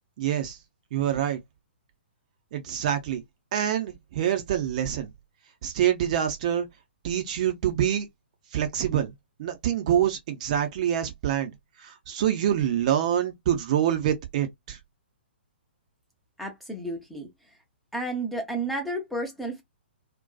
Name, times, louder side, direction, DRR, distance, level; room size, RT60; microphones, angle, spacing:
voice 1, 0.2-0.6 0.9-1.4 2.5-3.2 3.5-5.1 5.6-6.7 7.0-8.1 8.5-9.1 9.4-11.5 11.8-14.8, right 10 dB, 40° right, 0.6 m, -26 dB
voice 2, 16.4-17.3 17.9-19.6, right 2 dB, ahead, 0.7 m, -31 dB
2.6 x 2.2 x 2.3 m
figure-of-eight pair, 120°, 6 cm